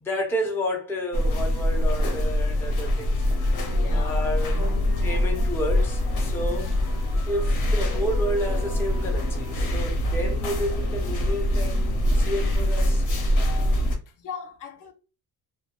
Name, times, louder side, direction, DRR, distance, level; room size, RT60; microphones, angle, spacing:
voice 1, 0.0-3.3 3.9-6.7 7.3-13.1, equal, 5° left, 0.4 m, -31 dB
sound 1, 1.1-13.9, left 1 dB, 75° left, 0.9 m, -24 dB
voice 2, 3.7-4.9 6.3-6.7 13.5-13.6 14.1-14.9, left 5 dB, 55° left, 0.5 m, -40 dB
2.2 x 2.1 x 2.8 m
cardioid pair, 145°, 37 cm